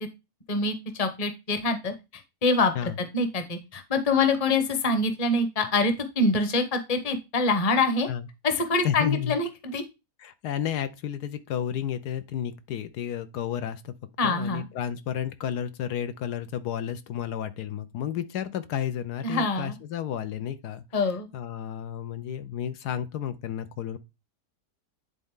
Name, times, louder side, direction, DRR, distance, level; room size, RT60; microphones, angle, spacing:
voice 1, 0.5-8.1 8.4-9.8 14.2-14.7 19.2-19.7 20.9-21.3, left 3 dB, 25° left, 0.9 m, -25 dB
voice 2, 8.8-9.4 10.2-13.9 14.2-20.8 21.3-24.0, left 9 dB, 80° left, 1.2 m, -32 dB
10.5 x 4.1 x 3.6 m
omnidirectional pair, 1.8 m